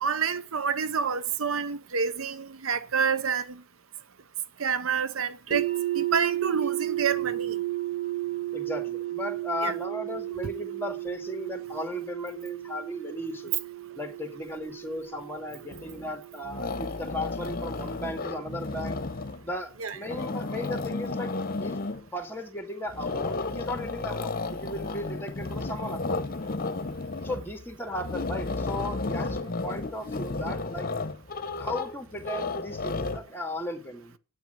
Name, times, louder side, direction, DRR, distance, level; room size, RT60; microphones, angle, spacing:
voice 1, 0.0-3.6 4.6-5.7 5.9-7.6 9.6-9.7 19.8-20.0, right 6 dB, 70° right, 0.7 m, -28 dB
sound 1, 5.5-17.4, right 15 dB, 40° right, 2.0 m, -33 dB
voice 2, 8.5-13.5 14.0-19.0 19.4-21.3 21.6-21.8 22.1-26.2 27.2-30.9 31.6-34.1, left 1 dB, 10° left, 2.3 m, -36 dB
sound 2, 15.7-16.2 16.4-19.5 19.9-22.1 22.9-33.2, left 3 dB, 45° left, 1.1 m, -33 dB
9.1 x 9.0 x 9.3 m
head